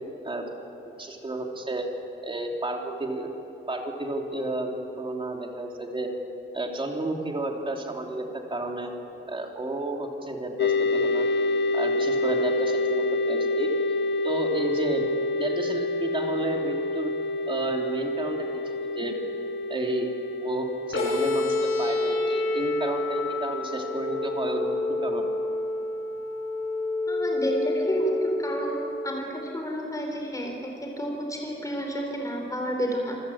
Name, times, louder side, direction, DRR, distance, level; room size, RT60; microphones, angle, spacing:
voice 1, 1.0-1.9 2.2-3.3 3.7-6.1 6.5-8.9 9.3-11.3 11.7-13.7 14.2-15.1 15.4-17.1 17.5-19.1 19.7-20.1 20.4-24.8 25.0-25.3, right 2 dB, 25° right, 1 dB, 3.1 m, -31 dB
sound 1, 10.6-24.5, left 2 dB, 60° left, 0.6 m, -28 dB
sound 2, 20.9-28.9, left 2 dB, 75° left, 7.3 m, -28 dB
voice 2, 27.1-33.1, equal, 15° left, 1 dB, 4.1 m, -30 dB
27.0 x 24.0 x 8.7 m, 2.8 s
wide cardioid pair, 170°, 21 cm